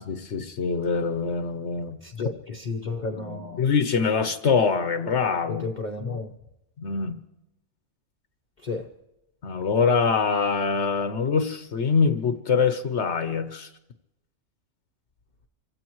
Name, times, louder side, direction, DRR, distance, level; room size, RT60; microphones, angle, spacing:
voice 1, 0.0-2.3 3.6-5.7 6.8-7.2 9.4-13.7, left 5 dB, 65° left, 9 dB, 1.2 m, -24 dB
voice 2, 2.0-3.6 5.6-6.3 8.6-8.8, left 3 dB, 40° left, 2 dB, 1.0 m, -32 dB
26.5 x 16.0 x 3.1 m, 0.91 s
omnidirectional pair, 1.3 m